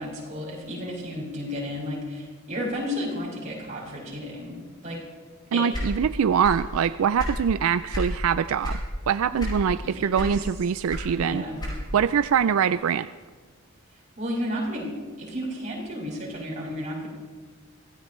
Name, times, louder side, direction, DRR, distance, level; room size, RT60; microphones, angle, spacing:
voice 1, 0.0-4.6 4.8-5.0 5.5-5.8 9.8-10.4 11.1-11.6 14.2-14.9 15.2-17.1, equal, 35° right, -4 dB, 5.8 m, -32 dB
voice 2, 5.5-8.8 9.1-11.4 11.9-13.1, right 7 dB, 85° right, 13 dB, 0.4 m, -23 dB
sound 1, 5.7-6.7 7.0-8.2 8.6-8.9 9.4-9.8 10.1-12.0, left 1 dB, 20° left, 5.2 m, -31 dB
25.0 x 16.5 x 3.2 m, 1.5 s
head